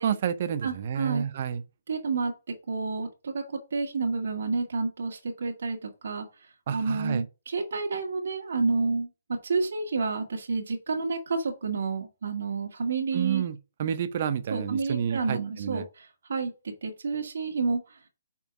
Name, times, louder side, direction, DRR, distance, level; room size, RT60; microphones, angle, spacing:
voice 1, 0.0-1.6 6.7-7.2 13.1-15.8, right 8 dB, 45° right, 0.8 m, -29 dB
voice 2, 0.6-1.2 1.9-2.3 2.7-6.3 6.7-9.1 9.4-13.4 14.5-16.5 16.8-18.0, right 4 dB, 70° right, 2.1 m, -30 dB
5.5 x 4.4 x 5.9 m
hypercardioid pair, 155°, 0 cm